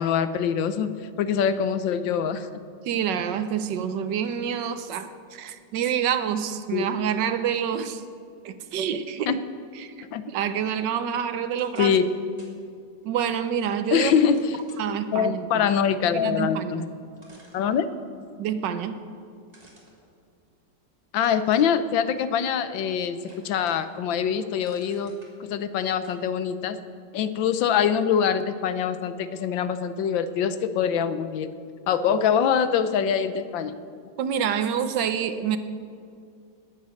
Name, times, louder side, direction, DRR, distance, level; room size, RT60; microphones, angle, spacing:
voice 1, 0.0-2.5 6.7-6.8 9.3-9.4 10.1-10.2 11.8-12.1 13.9-14.4 15.1-16.8 17.5-17.9 21.1-23.2 23.4-26.8 27.1-31.5 31.9-33.8, left 8 dB, 80° left, 12 dB, 1.4 m, -24 dB
voice 2, 2.8-8.0 8.4-9.4 9.7-11.9 13.0-14.1 14.8-15.7 16.0-16.9 18.4-19.0 34.2-35.6, right 8 dB, 70° right, 10 dB, 1.4 m, -27 dB
sound 1, 11.5-12.6 13.0-13.1 14.0-14.8 16.6-16.7 17.2-18.3 19.5-20.8 21.2-21.7 22.3-22.9 23.2-24.0 24.3-25.3 26.0-26.2, right 1 dB, 20° right, 2.8 m, -54 dB
20.0 x 8.5 x 6.5 m, 2.3 s
omnidirectional pair, 2.1 m